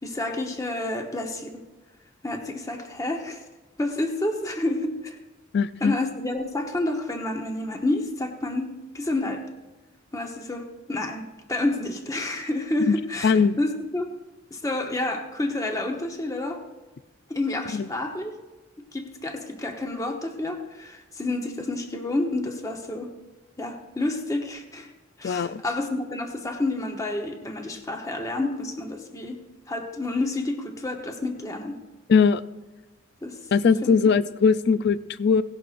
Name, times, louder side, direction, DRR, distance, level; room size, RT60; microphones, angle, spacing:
voice 1, 0.0-1.6 2.2-3.4 3.8-5.2 5.8-9.5 10.1-14.1 14.5-16.6 17.3-18.4 18.9-23.1 23.6-24.9 25.2-31.8 33.2-33.5 33.8-34.0, left 2 dB, 15° left, 3 dB, 1.0 m, -29 dB
voice 2, 5.5-5.9 12.9-13.0 13.2-13.6 17.7-17.9 25.2-25.6 32.1-32.4 33.5-35.4, left 5 dB, 55° left, 15 dB, 0.4 m, -20 dB
17.5 x 11.5 x 2.5 m, 1.2 s
head